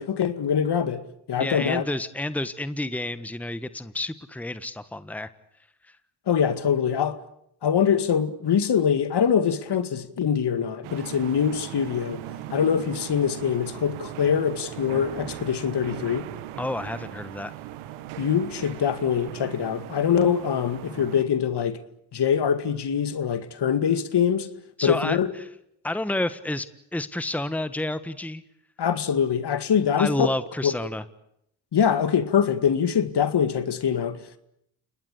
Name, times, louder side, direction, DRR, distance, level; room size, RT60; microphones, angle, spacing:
voice 1, 0.0-1.8 6.3-7.2 7.6-12.2 12.5-16.3 18.2-21.8 22.1-24.5 24.8-25.3 28.8-30.3 30.6-30.7 31.7-34.4, left 7 dB, 55° left, 2.2 m, -24 dB
voice 2, 1.4-5.3 5.9-6.0 16.6-17.5 24.8-25.2 25.8-28.4 30.0-31.0, left 1 dB, 5° left, 1.5 m, -30 dB
sound 1, 10.8-21.2, right 13 dB, 80° right, 1.6 m, -39 dB
30.0 x 19.0 x 8.5 m
hypercardioid pair, 50°, 49 cm